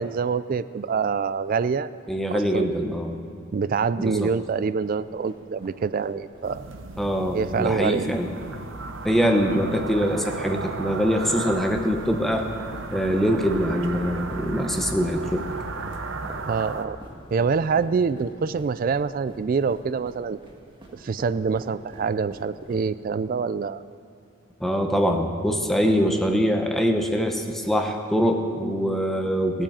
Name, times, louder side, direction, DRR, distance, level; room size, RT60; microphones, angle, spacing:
voice 1, 0.0-1.9 2.3-2.7 3.5-6.6 7.3-8.1 16.5-17.0 17.3-20.4 20.9-23.8, right 5 dB, 45° right, 14 dB, 0.3 m, -25 dB
voice 2, 2.1-3.2 4.0-4.3 7.0-8.3 9.0-12.5 12.9-15.5 24.6-29.6, equal, ahead, 3 dB, 0.8 m, -23 dB
sound 1, 4.8-23.1, right 1 dB, 25° right, 1.6 m, -47 dB
sound 2, 6.4-16.9, right 3 dB, 65° right, 0.8 m, -35 dB
16.0 x 8.9 x 7.4 m, 2.3 s
head